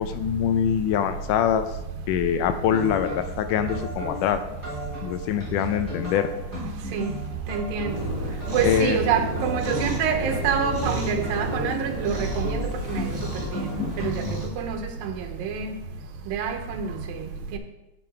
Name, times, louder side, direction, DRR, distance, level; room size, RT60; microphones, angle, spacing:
voice 1, 0.0-1.6 2.1-4.4 5.0-6.3 8.6-9.0, left 9 dB, 80° left, 2.0 m, -24 dB
sound 1, 2.7-14.5, equal, 5° left, 3.2 m, -35 dB
voice 2, 7.5-7.9 8.5-12.6 12.9-13.0 14.6-15.1 15.4-15.8 16.3-16.9, right 6 dB, 85° right, 2.6 m, -26 dB
Cat, 7.9-14.5, right 1 dB, 30° right, 3.2 m, -32 dB
9.1 x 6.8 x 4.5 m
omnidirectional pair, 4.1 m